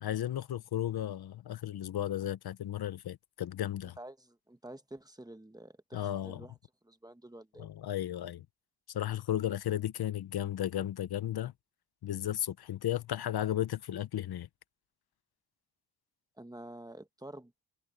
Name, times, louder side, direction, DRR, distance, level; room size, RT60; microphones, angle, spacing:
voice 1, 0.0-4.0 5.9-6.4 7.6-8.4 8.9-11.5 12.0-14.5, left 12 dB, 85° left, 0.7 m, -34 dB
voice 2, 4.0-6.6 6.8-7.7 16.4-17.5, right 1 dB, 10° right, 1.2 m, -49 dB
wide cardioid pair, 110°, 37 cm